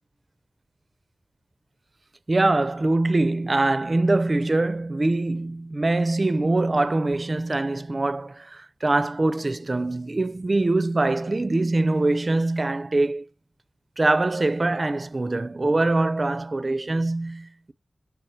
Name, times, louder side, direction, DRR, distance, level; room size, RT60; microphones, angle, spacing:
voice 1, 2.3-13.3 14.0-17.7, right 2 dB, 40° right, 0.5 m, -23 dB
6.6 x 4.6 x 4.4 m
wide cardioid pair, 75°, 0 cm